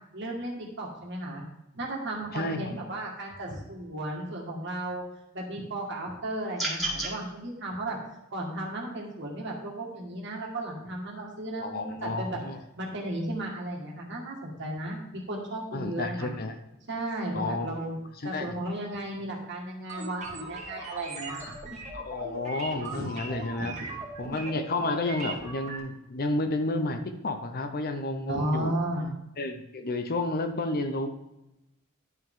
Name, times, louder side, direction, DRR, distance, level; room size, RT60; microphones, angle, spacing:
voice 1, 0.1-1.4 1.7-5.0 5.3-8.0 8.3-12.4 12.8-16.3 16.9-17.9 18.2-21.5 22.9-23.0 23.6-23.7 28.3-29.1, right 1 dB, 55° right, -1 dB, 2.0 m, -34 dB
voice 2, 2.3-2.7 11.6-12.6 15.7-16.6 17.3-17.7 18.2-18.6 21.9-23.8 24.2-28.7 29.4-31.1, left 2 dB, 45° left, 7 dB, 0.8 m, -31 dB
sound 1, 6.6-7.1, right 1 dB, ahead, 2.0 m, -30 dB
sound 2, 19.9-25.8, right 3 dB, 35° right, 1.6 m, -39 dB
11.0 x 5.5 x 3.7 m, 0.91 s
head